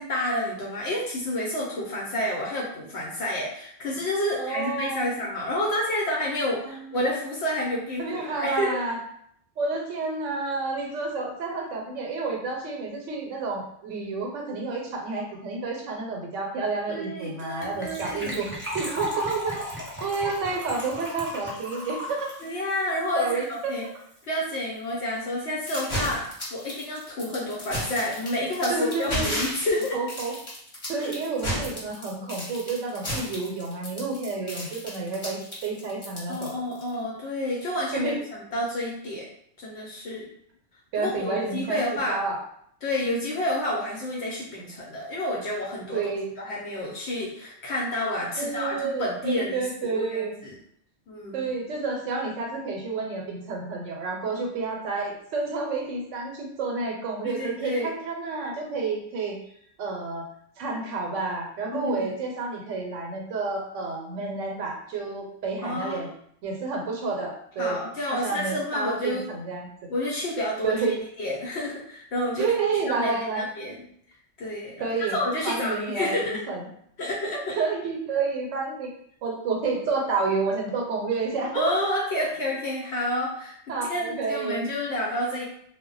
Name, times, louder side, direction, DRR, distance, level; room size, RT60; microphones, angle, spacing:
voice 1, 0.0-8.8 16.9-18.4 22.4-23.9 24.3-30.0 31.0-31.1 36.3-39.3 39.6-40.3 41.0-42.2 42.8-46.1 46.4-50.6 51.1-51.4 57.2-57.9 61.7-62.2 65.6-66.1 67.6-69.2 69.9-70.8 71.2-72.5 72.8-73.7 74.4-76.4 77.0-77.6 81.5-83.6 83.9-85.4, left 1 dB, 65° left, -4 dB, 0.8 m, -29 dB
voice 2, 4.4-5.0 6.6-7.0 8.0-9.0 9.6-18.5 18.7-19.7 20.0-22.3 23.1-23.9 28.7-29.3 29.9-30.3 30.9-36.5 37.9-38.2 40.9-41.8 42.1-42.4 45.9-46.3 48.4-50.4 51.3-59.4 59.8-60.3 60.6-66.1 66.4-67.8 68.1-69.7 70.6-71.0 72.4-73.5 74.8-75.2 75.4-76.7 77.5-78.9 79.2-81.7 83.7-84.6, right 4 dB, 80° right, 0 dB, 0.9 m, -30 dB
Gurgling / Trickle dribble / Fill (with liquid), 17.6-23.8 24.1-24.2 24.4-24.6 24.9-25.0, left 1 dB, 15° right, 0.5 m, -36 dB
sound 1, 25.7-36.9, equal, 30° left, 0.9 m, -33 dB
2.2 x 2.0 x 3.7 m, 0.68 s
omnidirectional pair, 1.3 m